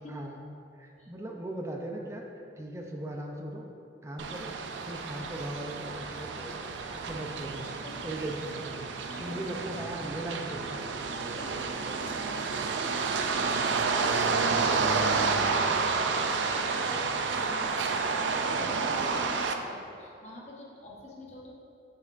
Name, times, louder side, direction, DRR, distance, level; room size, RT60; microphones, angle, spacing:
voice 1, 0.1-0.4 0.8-2.3 2.6-3.7 4.0-4.5 4.8-6.5 6.9-7.7 8.0-8.8 9.2-10.8 14.6-14.9, right 1 dB, 15° right, 0 dB, 0.5 m, -38 dB
sound 1, 4.2-19.6, right 4 dB, 85° right, 0.4 m, -30 dB
voice 2, 9.1-9.8 11.0-14.8 15.1-21.5, left 1 dB, 40° left, -4 dB, 1.0 m, -47 dB
8.1 x 5.5 x 2.5 m, 2.6 s
head